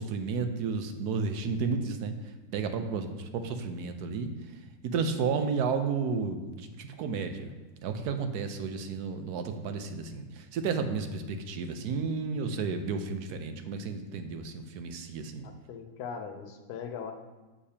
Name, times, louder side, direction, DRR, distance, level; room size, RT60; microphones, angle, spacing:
voice 1, 0.0-2.1 2.5-4.3 4.8-7.5 7.8-15.5, right 5 dB, 85° right, 7 dB, 1.2 m, -32 dB
voice 2, 15.4-17.1, left 6 dB, 85° left, 6 dB, 1.2 m, -40 dB
7.5 x 6.6 x 2.8 m, 1.2 s
omnidirectional pair, 1.6 m